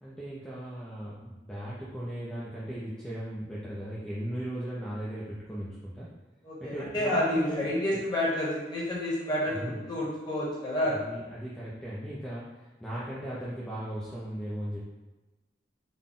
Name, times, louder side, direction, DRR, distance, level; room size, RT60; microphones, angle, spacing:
voice 1, 0.0-6.1 6.6-8.0 9.5-9.8 10.9-14.8, right 1 dB, 5° left, -8 dB, 0.4 m, -37 dB
voice 2, 6.4-11.0, left 1 dB, 25° left, -6 dB, 1.0 m, -29 dB
4.0 x 2.1 x 3.6 m, 1.1 s
head